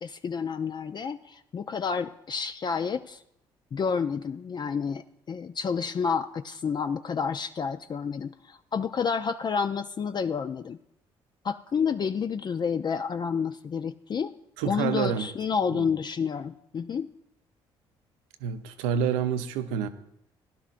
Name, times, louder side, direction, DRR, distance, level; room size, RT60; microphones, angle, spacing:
voice 1, 0.0-3.2 3.7-10.8 11.4-14.3 14.6-17.1, left 6 dB, 40° left, 10 dB, 0.4 m, -29 dB
voice 2, 14.6-15.3 15.7-15.8 18.4-19.9, right 8 dB, 85° right, 10 dB, 0.7 m, -28 dB
16.0 x 11.0 x 2.5 m, 0.78 s
hypercardioid pair, 55°, 12 cm